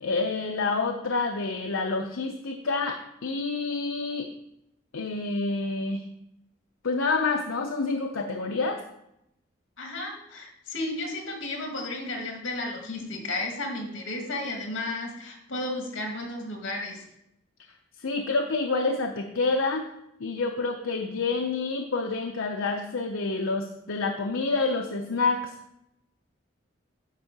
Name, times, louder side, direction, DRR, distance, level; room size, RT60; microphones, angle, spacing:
voice 1, 0.0-4.3 4.9-6.0 6.8-8.8 18.0-19.9 20.2-25.5, left 3 dB, 90° left, 3 dB, 0.7 m, -28 dB
voice 2, 9.8-17.0, left 2 dB, 70° left, 2 dB, 2.0 m, -33 dB
10.0 x 3.7 x 6.7 m, 0.81 s
head